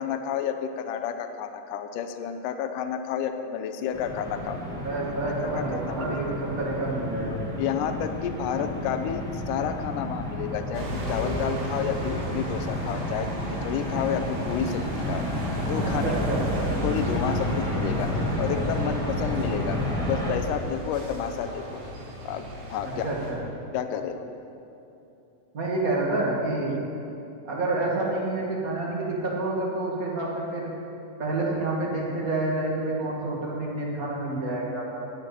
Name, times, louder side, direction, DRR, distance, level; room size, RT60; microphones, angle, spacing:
voice 1, 0.0-4.6 5.7-6.2 7.6-15.2 15.7-16.0 16.8-18.1 18.4-19.8 20.1-21.8 22.3-23.1 23.7-24.2 26.7-26.8, left 8 dB, 80° left, 7 dB, 2.0 m, -30 dB
sound 1, 3.9-20.3, left 1 dB, 5° left, 0.8 m, -31 dB
voice 2, 4.8-7.4 15.8-16.6 19.1-19.4 22.8-23.4 25.5-26.8 27.4-30.7 31.2-35.0, right 2 dB, 30° right, -4 dB, 1.8 m, -28 dB
sound 2, 10.7-23.3, equal, 80° right, 4.2 m, -35 dB
12.5 x 7.6 x 8.4 m, 2.8 s
omnidirectional pair, 4.2 m